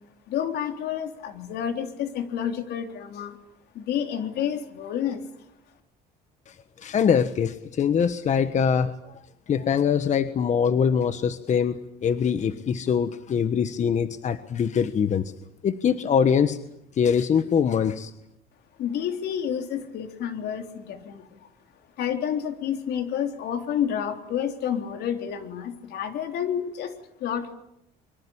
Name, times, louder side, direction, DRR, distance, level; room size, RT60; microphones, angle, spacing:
voice 1, 0.3-3.4 3.7-5.2 18.8-21.5 22.0-26.9 27.2-27.5, left 9 dB, 75° left, 6 dB, 3.5 m, -29 dB
voice 2, 6.5-9.2 9.5-15.3 15.6-16.6 16.9-18.1, left 7 dB, 45° left, 11 dB, 1.3 m, -23 dB
24.0 x 24.0 x 8.8 m, 0.80 s
cardioid pair, 110°, 17 cm